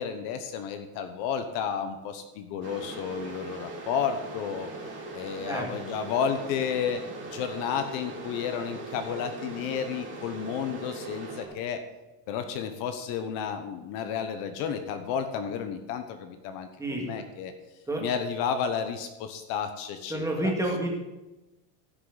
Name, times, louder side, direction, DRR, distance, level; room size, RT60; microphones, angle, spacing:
voice 1, 0.0-4.7 5.1-11.8 12.3-17.5 18.0-20.5, left 7 dB, 55° left, 8 dB, 1.0 m, -32 dB
sound 1, 2.6-11.5, right 3 dB, 25° right, 2.5 m, -40 dB
voice 2, 20.1-20.9, right 1 dB, 5° right, -1 dB, 2.0 m, -29 dB
16.5 x 6.3 x 4.0 m, 1.0 s
cardioid pair, 155°, 43 cm